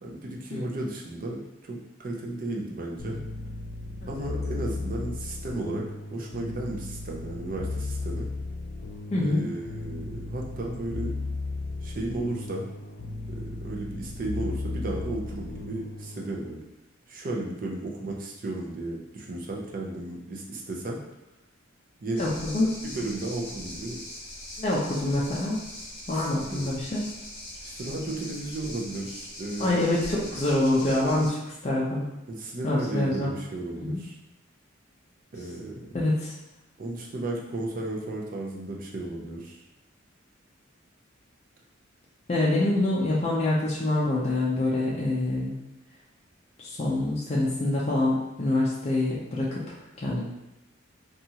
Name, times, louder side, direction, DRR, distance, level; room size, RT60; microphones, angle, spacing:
voice 1, 0.0-3.2 4.1-8.3 9.2-11.1 11.8-12.7 13.3-16.6 17.1-21.0 22.0-22.4 22.8-24.0 26.1-26.7 27.6-30.3 32.3-34.2 35.3-35.9 36.8-39.6, right 2 dB, 45° right, -1 dB, 0.4 m, -34 dB
sound 1, 3.0-16.3, left 3 dB, 90° left, 0.4 m, -35 dB
voice 2, 9.1-9.5 22.1-22.3 22.5-22.7 24.6-25.6 26.1-27.0 29.6-32.0 32.6-33.3 33.8-34.0 35.9-36.3 42.3-45.6 46.6-49.8 50.0-50.2, left 2 dB, 30° left, -6 dB, 0.4 m, -26 dB
sound 2, 22.2-31.3, left 1 dB, 55° left, 0.8 m, -41 dB
2.8 x 2.3 x 2.7 m, 0.94 s
head